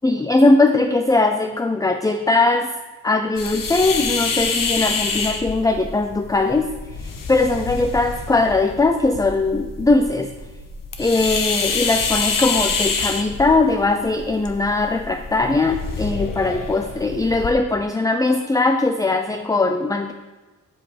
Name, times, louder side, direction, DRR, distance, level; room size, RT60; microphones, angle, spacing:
voice 1, 0.0-2.7 3.0-6.7 7.3-10.3 11.0-20.1, left 2 dB, 10° left, 7 dB, 0.4 m, -20 dB
sound 1, 3.4-17.5, left 4 dB, 75° left, 1.2 m, -27 dB
8.2 x 6.3 x 8.2 m, 1.2 s
wide cardioid pair, 130°, 33 cm